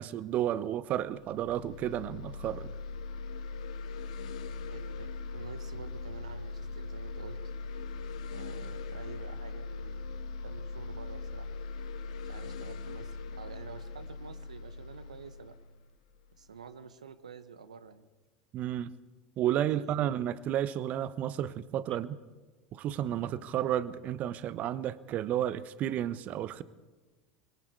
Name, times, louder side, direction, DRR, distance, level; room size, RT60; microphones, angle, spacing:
voice 1, 0.0-2.7 18.5-18.9 19.4-22.1 22.7-26.6, right 11 dB, 45° right, 1.0 m, -32 dB
sound 1, 1.1-16.6, left 3 dB, 70° left, 1.7 m, -40 dB
voice 2, 4.7-7.4 8.3-10.0 10.4-11.6 12.2-15.5 16.3-18.1 19.4-20.1, right 6 dB, 85° right, 1.2 m, -49 dB
25.0 x 22.5 x 4.7 m
hypercardioid pair, 80°, 4 cm